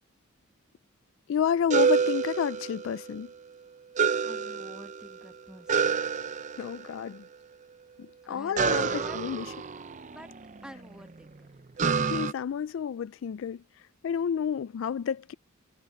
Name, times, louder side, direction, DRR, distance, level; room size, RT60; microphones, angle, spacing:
voice 1, 1.3-3.3 5.7-5.8 6.6-7.2 8.0-9.5 12.0-13.6 14.0-15.3, left 8 dB, 65° left, 0.3 m, -30 dB
sound 1, 1.7-3.2 3.9-5.2 5.7-6.9 8.5-10.6 11.8-12.3, right 6 dB, 35° right, 0.6 m, -28 dB
voice 2, 4.2-6.0 8.3-9.2 10.0-10.3 10.6-11.5, equal, 5° right, 1.7 m, -48 dB
head